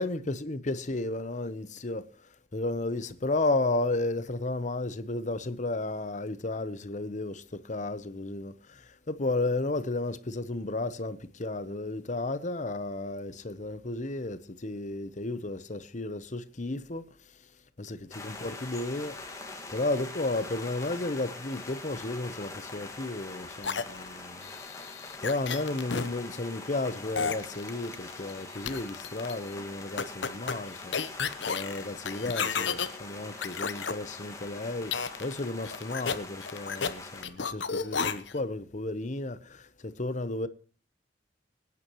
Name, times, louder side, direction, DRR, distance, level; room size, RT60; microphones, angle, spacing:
voice 1, 0.0-17.5 17.8-19.3 19.7-24.5 25.0-31.0 31.5-40.5, left 2 dB, 45° left, 1.0 m, -33 dB
sound 1, 18.1-37.2, left 3 dB, 20° left, 1.9 m, -43 dB
sound 2, 23.6-26.1 27.2-28.3 28.7-29.3 30.0-32.9 33.4-33.9 34.9-35.4 35.6-36.9 37.2-38.4, left 6 dB, 85° left, 1.0 m, -32 dB
25.0 x 9.7 x 3.1 m
head